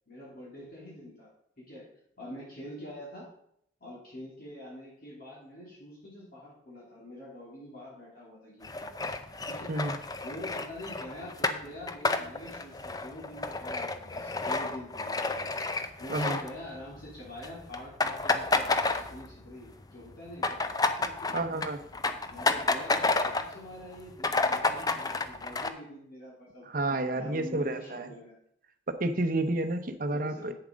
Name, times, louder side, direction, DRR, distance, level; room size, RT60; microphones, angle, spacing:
voice 1, 0.1-1.3 1.6-1.9 2.2-3.2 3.8-9.7 10.2-15.5 16.0-20.6 21.0-21.7 22.3-26.6 27.1-28.3 30.1-30.5, left 1 dB, 50° left, -6 dB, 3.1 m, -45 dB
sound 1, 8.6-17.0 17.3-17.5 17.7-19.5 19.8-23.6 23.9-24.0 24.2-25.7, left 3 dB, 20° left, 0.5 m, -30 dB
voice 2, 21.3-21.8 26.7-28.1 28.9-30.5, right 2 dB, 45° right, 8 dB, 0.8 m, -30 dB
8.8 x 7.0 x 5.1 m, 0.71 s
head